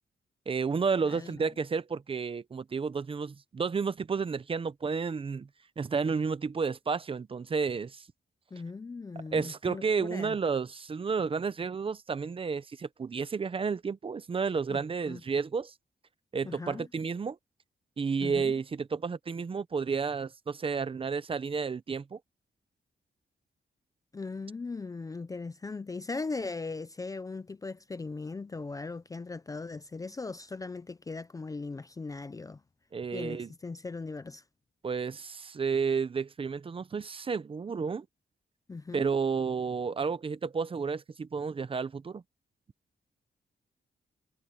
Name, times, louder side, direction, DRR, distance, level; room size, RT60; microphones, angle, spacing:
voice 1, 0.5-5.5 5.8-8.0 9.3-15.7 16.3-17.4 18.0-22.2 32.9-33.5 34.8-38.1 38.9-42.2, right 5 dB, 30° right, 0.7 m, -31 dB
voice 2, 1.0-1.5 8.5-10.4 14.7-15.2 16.4-16.9 18.2-18.5 24.1-32.6 33.1-34.4 38.7-39.1, left 3 dB, 20° left, 0.4 m, -39 dB
wide cardioid pair, 170°, 18 cm